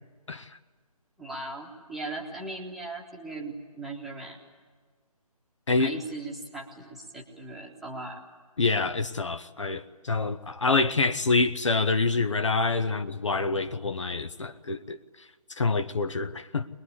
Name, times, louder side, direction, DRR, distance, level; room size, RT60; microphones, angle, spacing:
voice 1, 1.2-4.4 5.8-8.2, right 2 dB, ahead, 1.3 m, -38 dB
voice 2, 5.7-6.0 8.6-15.0 15.6-16.7, left 3 dB, 50° left, 0.9 m, -26 dB
23.5 x 21.0 x 9.8 m
figure-of-eight pair, 150°, 19 cm